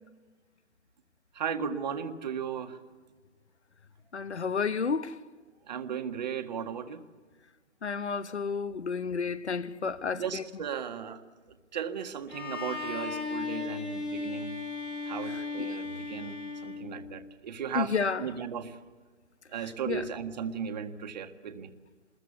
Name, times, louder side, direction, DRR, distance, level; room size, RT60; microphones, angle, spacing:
voice 1, 1.3-2.8 5.7-7.0 10.1-11.2 11.7-14.5 15.1-18.8 19.5-21.7, right 7 dB, 35° right, 1.8 m, -36 dB
voice 2, 4.1-5.1 7.8-10.4 17.7-18.2 19.9-20.0, left 5 dB, 60° left, 1.2 m, -31 dB
Bowed string instrument, 12.3-17.3, left 4 dB, 80° left, 6.2 m, -36 dB
27.0 x 21.5 x 8.2 m
figure-of-eight pair, 145°, 37 cm